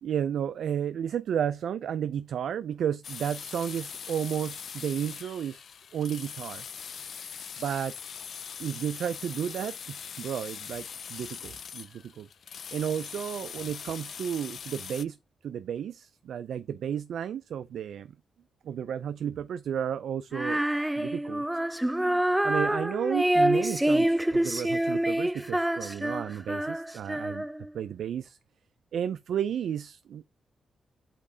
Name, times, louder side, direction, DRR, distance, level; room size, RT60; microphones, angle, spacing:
voice 1, 0.0-5.6 5.9-6.6 7.6-7.9 8.6-12.3 12.7-15.2 15.4-18.1 18.6-20.6 21.0-21.4 22.4-27.5 27.7-28.4 28.9-30.2, right 9 dB, 80° right, 0.4 m, -32 dB
sound 1, 3.0-15.0, left 7 dB, 65° left, 0.4 m, -41 dB
Female singing, 20.3-27.7, right 1 dB, 10° right, 0.3 m, -27 dB
8.4 x 5.3 x 2.8 m
cardioid pair, 75°, 0 cm